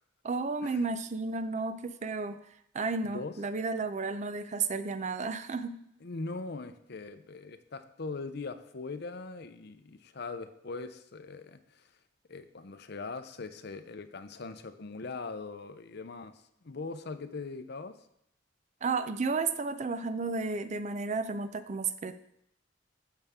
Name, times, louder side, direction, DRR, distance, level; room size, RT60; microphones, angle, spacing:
voice 1, 0.2-2.4 2.7-5.8 18.8-22.1, right 4 dB, 35° right, 12 dB, 0.5 m, -32 dB
voice 2, 6.0-11.8 12.3-16.3 16.6-17.9, left 3 dB, 55° left, 10 dB, 0.7 m, -41 dB
12.5 x 7.2 x 3.6 m, 0.75 s
head